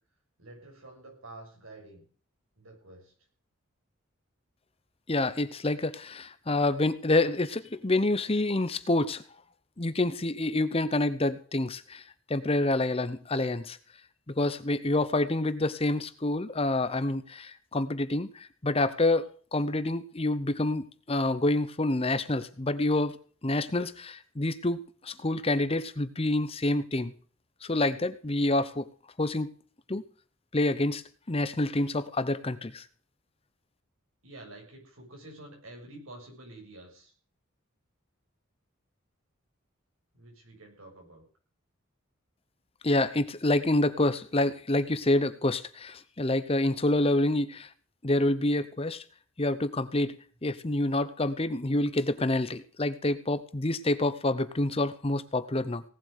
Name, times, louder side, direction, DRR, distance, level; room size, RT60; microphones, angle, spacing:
voice 1, 0.4-2.0 2.6-3.1 34.2-37.1 40.1-41.2, right 2 dB, 80° right, 1 dB, 6.8 m, -48 dB
voice 2, 5.1-9.2 9.8-12.0 12.3-13.8 14.4-23.2 23.4-27.1 27.6-28.9 29.2-29.5 29.9-30.0 30.5-32.8 42.8-47.7 48.0-49.0 49.4-55.8, left 2 dB, 25° left, 13 dB, 0.8 m, -27 dB
18.0 x 7.8 x 6.5 m, 0.42 s
head